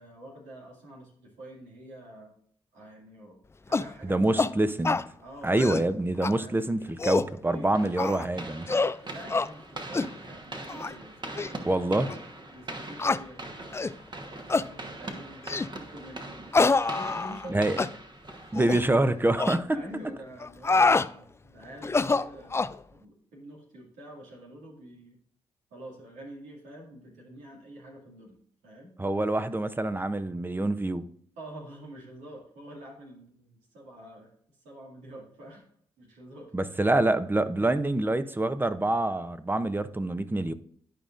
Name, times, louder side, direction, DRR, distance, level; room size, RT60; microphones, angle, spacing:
voice 1, 0.0-2.3 2.7-4.6 5.2-5.9 6.1-6.6 7.4-7.7 9.0-12.2 12.5-13.9 14.2-17.9 18.3-18.7 19.0-25.2 25.7-29.0 31.4-34.3 34.6-35.6 36.0-37.0, right 1 dB, 85° right, -2 dB, 2.2 m, -47 dB
sound 1, 3.7-3.9 4.4-4.5 4.8-5.1 5.5-5.9 6.2-6.3 6.8-7.3 8.0-8.3 8.7-9.0 9.3-9.5 9.9-10.1 10.7-10.9 11.4-11.5 12.1-12.2 13.0-13.2 13.7-14.0 14.5-14.7 15.5-15.7 16.5-17.5 17.8-17.9 18.5-18.8 19.4-19.6 20.4-21.1 21.8-22.8, left 3 dB, 20° left, 0.4 m, -25 dB
voice 2, 4.0-5.0 5.4-8.7 11.6-12.1 17.5-17.8 18.5-19.8 29.0-31.1 36.5-40.5, right 2 dB, 15° right, 12 dB, 0.7 m, -26 dB
sound 2, 7.7-19.0, right 2 dB, 35° right, 1.3 m, -42 dB
11.5 x 5.0 x 2.5 m, 0.63 s
hypercardioid pair, 45°, 13 cm